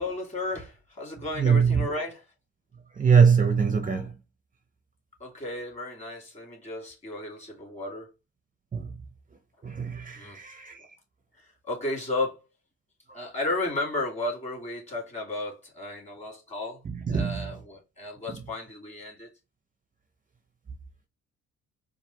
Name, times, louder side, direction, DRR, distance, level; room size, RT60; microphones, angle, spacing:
voice 1, 0.0-2.3 5.2-8.1 10.1-10.4 11.3-12.4 13.1-19.3, left 2 dB, 25° left, 2.6 m, -34 dB
voice 2, 1.4-1.7 3.0-4.1 8.7-8.9 9.6-10.7 17.1-17.3, right 6 dB, 25° right, 0.7 m, -22 dB
4.6 x 2.5 x 4.0 m
cardioid pair, 90°, 30 cm